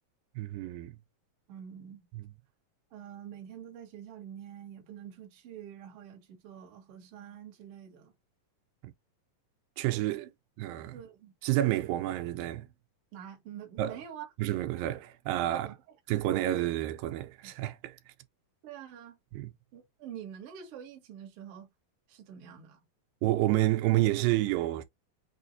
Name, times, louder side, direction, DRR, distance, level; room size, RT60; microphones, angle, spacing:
voice 1, 0.4-1.0 2.1-2.3 8.8-8.9 9.8-10.3 10.6-11.0 11.4-12.7 13.8-14.0 14.4-15.7 16.1-18.0 19.3-19.5 23.2-24.8, right 15 dB, 85° right, 2.3 m, -29 dB
voice 2, 1.5-2.1 2.9-8.1 10.1-10.3 10.9-11.3 13.1-14.3 15.5-15.8 17.4-17.5 18.6-19.2 19.7-21.7 22.1-22.8, right 9 dB, 60° right, 1.7 m, -46 dB
6.0 x 2.4 x 2.6 m
omnidirectional pair, 4.0 m